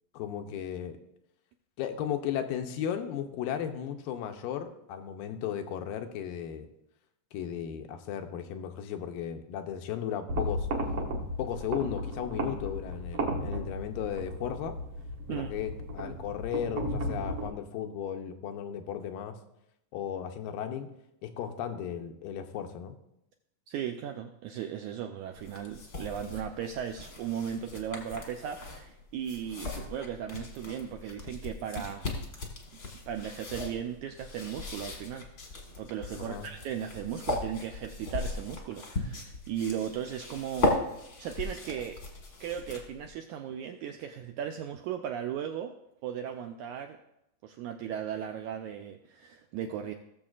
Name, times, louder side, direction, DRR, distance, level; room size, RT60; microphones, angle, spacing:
voice 1, 0.1-1.0 1.8-6.7 7.3-10.7 11.4-14.7 15.3-19.4 19.9-20.9 21.2-23.0 36.2-36.5, left 9 dB, 90° left, 6 dB, 2.4 m, -35 dB
sound 1, 10.3-17.5, equal, 65° right, 1.3 m, -34 dB
voice 2, 23.7-32.1 33.1-35.2 35.8-40.8 41.2-42.0 42.4-45.7 46.0-47.0 47.4-49.9, right 9 dB, 85° right, 5 dB, 1.7 m, -36 dB
sound 2, 25.3-43.1, left 2 dB, 45° left, 1.1 m, -37 dB
18.0 x 7.0 x 2.4 m, 0.83 s
omnidirectional pair, 4.0 m